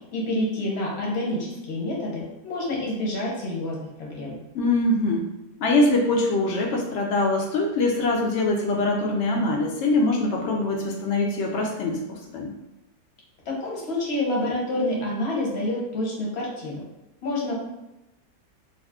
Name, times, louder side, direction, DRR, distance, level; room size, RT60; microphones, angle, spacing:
voice 1, 0.1-4.4 13.5-16.8 17.2-17.5, left 1 dB, 50° left, -3 dB, 0.9 m, -28 dB
voice 2, 4.5-5.3 5.6-12.5, left 2 dB, 85° left, -1 dB, 0.6 m, -23 dB
2.6 x 2.4 x 3.5 m, 0.93 s
omnidirectional pair, 1.8 m